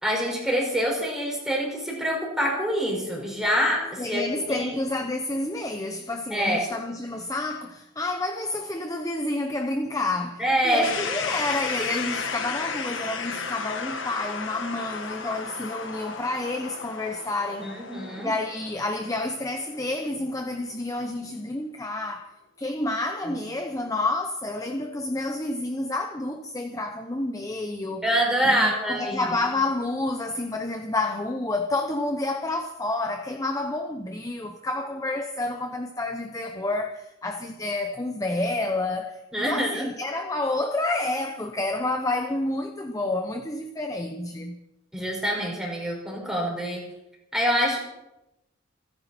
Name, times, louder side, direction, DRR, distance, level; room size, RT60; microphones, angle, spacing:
voice 1, 0.0-4.7 6.3-6.7 10.4-11.0 17.6-18.3 23.3-23.4 28.0-29.3 39.3-39.9 44.9-46.9 47.3-47.8, equal, 5° right, 5.2 m, -25 dB
voice 2, 4.0-17.7 18.2-22.3 22.6-28.0 28.4-44.6, left 2 dB, 15° left, 0.9 m, -29 dB
sound 1, 10.8-20.7, left 5 dB, 75° left, 1.7 m, -34 dB
28.5 x 10.0 x 4.4 m
head